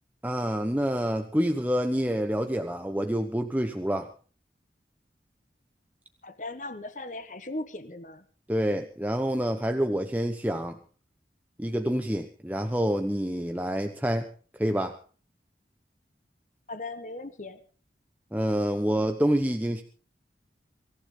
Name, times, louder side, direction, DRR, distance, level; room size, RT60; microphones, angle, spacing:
voice 1, 0.2-4.1 8.5-10.8 11.6-14.3 14.5-15.0 18.3-19.8, equal, 10° right, 6 dB, 1.0 m, -27 dB
voice 2, 6.2-8.2 16.7-17.6, left 2 dB, 45° left, 11 dB, 1.3 m, -38 dB
24.5 x 15.0 x 3.9 m, 0.39 s
head